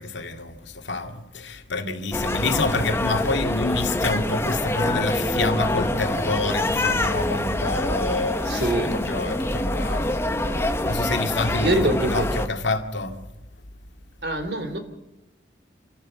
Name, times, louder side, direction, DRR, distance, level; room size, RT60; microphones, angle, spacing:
voice 1, 0.0-13.2, left 3 dB, 80° left, 2.3 m, -28 dB
sound 1, 2.1-12.5, left 1 dB, 15° left, 1.0 m, -25 dB
voice 2, 8.5-9.0 11.6-12.3 14.2-14.8, right 1 dB, 60° right, 3.3 m, -24 dB
27.5 x 14.5 x 7.6 m
head